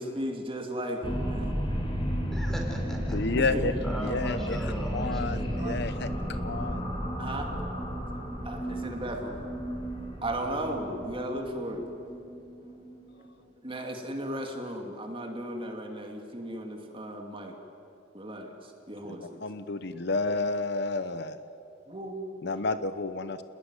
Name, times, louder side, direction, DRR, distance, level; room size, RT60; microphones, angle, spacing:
voice 1, 0.0-1.5 3.4-3.6 5.1-6.4 7.2-7.5 8.4-9.4 10.2-11.9 13.6-17.5 18.1-19.4 21.9-22.3, right 1 dB, 30° right, 2 dB, 2.6 m, -36 dB
sound 1, 1.0-13.9, equal, 25° left, 5.3 m, -33 dB
voice 2, 2.3-3.2 3.8-5.6, right 1 dB, ahead, 0 dB, 5.5 m, -39 dB
voice 3, 3.1-3.7 4.0-4.6 4.9-6.1 6.4-6.9 19.2-21.4 22.4-23.4, left 3 dB, 60° left, 11 dB, 0.9 m, -30 dB
30.0 x 20.5 x 9.9 m, 2.8 s
head